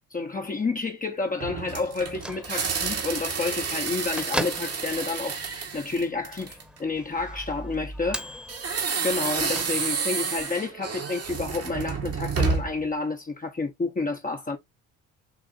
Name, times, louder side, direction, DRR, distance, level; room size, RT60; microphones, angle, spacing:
voice 1, 0.1-5.4 5.7-8.3 9.0-14.6, left 3 dB, 25° left, 1.0 m, -30 dB
sound 1, 1.4-6.8 8.5-12.8, right 5 dB, 45° right, 1.4 m, -30 dB
Bell / Microwave oven, 1.9-10.2, equal, 5° right, 1.2 m, -39 dB
6.6 x 2.5 x 2.6 m
supercardioid pair, 70°, 34 cm